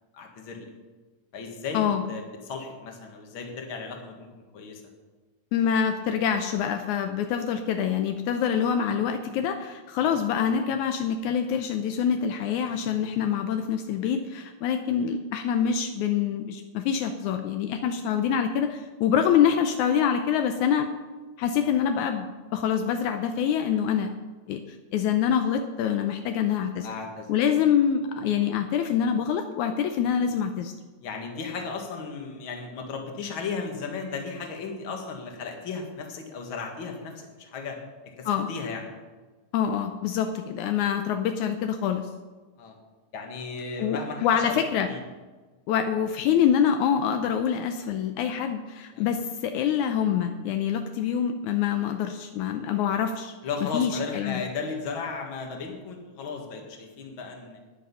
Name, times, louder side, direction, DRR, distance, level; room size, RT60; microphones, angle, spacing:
voice 1, 0.1-0.7 1.3-4.3 4.5-4.8 10.0-10.2 26.8-27.3 31.0-37.8 38.2-38.8 42.6-42.7 43.1-45.0 48.9-49.1 53.4-57.6, left 4 dB, 45° left, 2 dB, 2.2 m, -35 dB
voice 2, 5.5-20.9 21.4-22.3 22.5-24.1 24.5-24.6 24.9-26.9 27.3-30.7 38.3-38.5 39.5-42.1 43.8-44.9 45.7-53.3 53.7-54.4, left 8 dB, 80° left, 6 dB, 2.1 m, -25 dB
12.5 x 10.0 x 5.6 m, 1.3 s
omnidirectional pair, 3.5 m